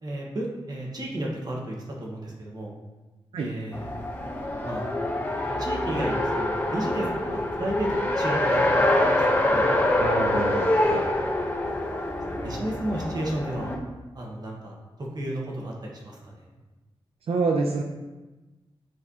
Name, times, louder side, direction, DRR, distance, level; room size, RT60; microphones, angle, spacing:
voice 1, 0.0-2.7 3.4-3.9 4.6-4.9 5.6-9.7 12.4-13.7 14.1-16.4, right 1 dB, 45° right, -2 dB, 1.3 m, -33 dB
Race car auto racing, 3.7-13.8, left 1 dB, 20° left, 0.8 m, -25 dB
voice 2, 10.0-11.0 17.3-17.8, right 3 dB, 85° right, 1 dB, 0.5 m, -27 dB
8.9 x 4.2 x 2.8 m, 1.2 s
wide cardioid pair, 120°, 10 cm